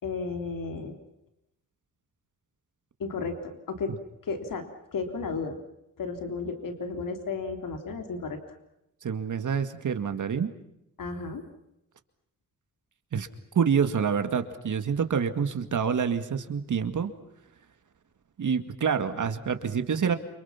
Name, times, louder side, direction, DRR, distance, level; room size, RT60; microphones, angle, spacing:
voice 1, 0.0-1.0 3.0-4.0 4.2-5.6 6.0-8.6 11.0-11.4, left 4 dB, 75° left, 5 dB, 3.5 m, -33 dB
voice 2, 9.0-10.5 13.1-13.3 13.5-17.1 18.4-20.1, right 6 dB, 65° right, 8 dB, 2.2 m, -27 dB
29.5 x 26.5 x 5.9 m, 0.83 s
wide cardioid pair, 135°, 33 cm